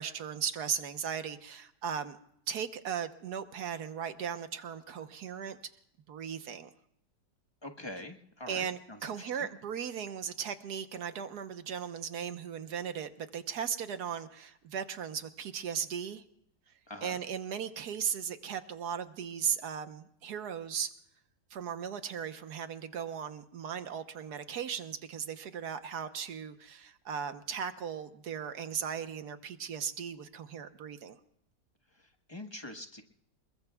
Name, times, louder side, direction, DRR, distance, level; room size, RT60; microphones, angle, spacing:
voice 1, 0.0-2.2 2.5-5.6 6.1-6.7 8.5-16.2 17.0-20.9 21.5-31.2, right 7 dB, 70° right, 9 dB, 1.5 m, -37 dB
voice 2, 7.6-9.5 16.9-17.2 31.9-33.0, left 1 dB, 15° left, 4 dB, 1.2 m, -45 dB
27.5 x 22.0 x 2.3 m, 0.73 s
omnidirectional pair, 1.8 m